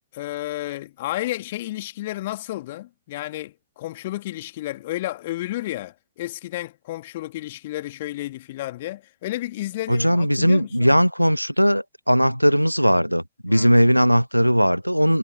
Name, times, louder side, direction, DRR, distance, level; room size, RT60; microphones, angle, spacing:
voice 1, 0.1-10.9 13.5-13.8, left 16 dB, 55° left, 2.1 m, -32 dB
voice 2, 9.9-15.2, equal, 90° right, 0.5 m, -18 dB
figure-of-eight pair, 90°, 0 cm